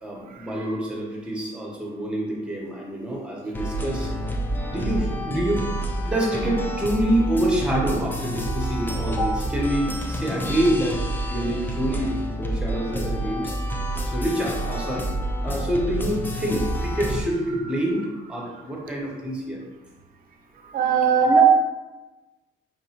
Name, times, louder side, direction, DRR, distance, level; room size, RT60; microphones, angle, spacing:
voice 1, 0.0-4.1 4.7-5.6 6.0-11.0 11.3-13.5 14.1-15.1 15.4-19.6 21.2-21.4, right 1 dB, 5° right, -2 dB, 1.0 m, -26 dB
sound 1, 3.5-17.2, right 1 dB, 10° left, 0.5 m, -28 dB
voice 2, 20.6-21.4, right 7 dB, 60° right, 4 dB, 0.6 m, -21 dB
4.9 x 2.6 x 2.9 m, 1.1 s
cardioid pair, 110°, 17 cm